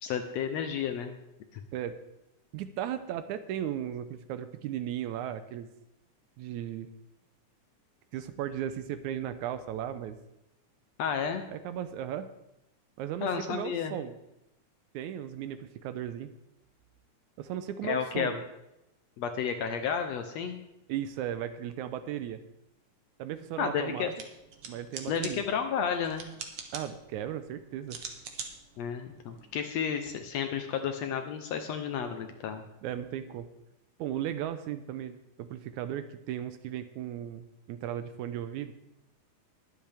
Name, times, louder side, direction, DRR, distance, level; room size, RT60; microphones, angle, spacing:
voice 1, 0.0-1.2 1.5-1.6 11.0-11.5 13.2-14.0 17.8-18.3 19.2-20.6 23.6-24.1 25.1-26.3 28.8-32.6, left 7 dB, 70° left, 6 dB, 1.7 m, -32 dB
voice 2, 2.5-5.7 6.4-6.9 8.1-10.2 11.5-12.3 13.0-14.1 14.9-16.3 17.4-18.4 20.9-22.4 23.2-24.2 24.7-25.4 26.7-28.0 32.8-33.5 34.0-38.7, right 10 dB, 80° right, 11 dB, 1.9 m, -36 dB
sound 1, 24.0-30.1, right 6 dB, 55° right, 1.7 m, -45 dB
21.0 x 8.0 x 3.4 m, 0.89 s
omnidirectional pair, 3.6 m